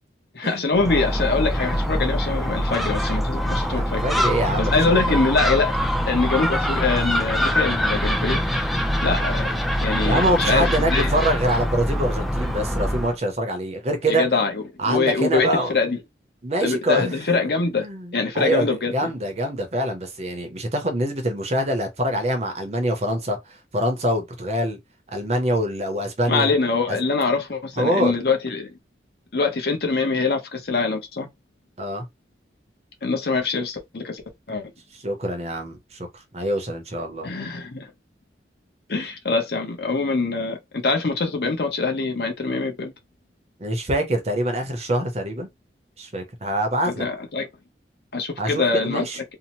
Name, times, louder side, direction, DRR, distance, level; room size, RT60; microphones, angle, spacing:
voice 1, 0.3-4.0 4.6-5.8 6.1-8.4 9.0-9.5 9.8-11.1 14.1-16.0 16.6-17.9 18.1-19.1 26.3-28.7 29.3-31.3 33.0-34.2 34.5-34.7 37.2-37.9 38.9-42.9 47.0-47.5 48.1-49.1, left 4 dB, 60° left, 0.7 m, -24 dB
Gull seagull, 0.7-13.2, equal, ahead, 0.3 m, -24 dB
voice 2, 3.7-5.2 10.0-14.3 14.8-15.7 16.4-17.3 17.8-24.8 25.1-26.5 26.9-27.0 27.8-28.1 31.8-32.1 34.9-37.3 43.6-45.5 46.0-47.1 48.4-49.2, right 1 dB, 35° right, 0.6 m, -25 dB
2.7 x 2.0 x 2.9 m
head